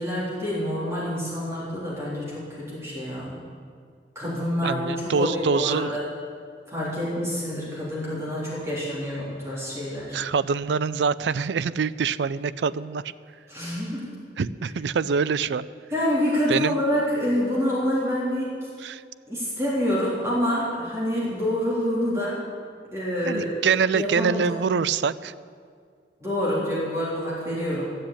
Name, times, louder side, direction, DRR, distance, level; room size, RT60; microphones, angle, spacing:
voice 1, 0.0-3.4 4.1-6.1 6.7-10.3 13.5-14.1 15.9-18.7 19.3-22.4 22.9-23.6 23.9-24.6 26.2-27.8, equal, 15° right, -8 dB, 3.4 m, -27 dB
voice 2, 4.6-5.9 10.1-13.0 14.4-15.7 16.5-16.7 18.8-19.0 23.2-25.3, right 6 dB, 75° right, 16 dB, 0.4 m, -25 dB
13.0 x 7.7 x 8.8 m, 2.1 s
head